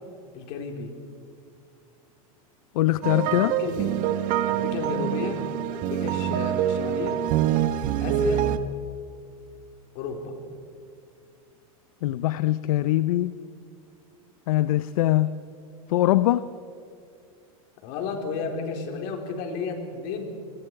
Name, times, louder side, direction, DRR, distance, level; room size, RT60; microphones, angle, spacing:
voice 1, 0.3-0.9 3.2-4.0 4.5-5.4 5.7-7.2 8.0-8.5 9.9-10.4 17.8-20.2, left 4 dB, 55° left, 3 dB, 4.4 m, -32 dB
voice 2, 2.7-3.5 12.0-13.3 14.5-15.3 15.9-16.5, left 15 dB, 75° left, 15 dB, 0.7 m, -22 dB
sound 1, 3.0-8.6, right 11 dB, 45° right, 1.4 m, -25 dB
27.0 x 21.5 x 4.9 m, 2.4 s
supercardioid pair, 130°, 18 cm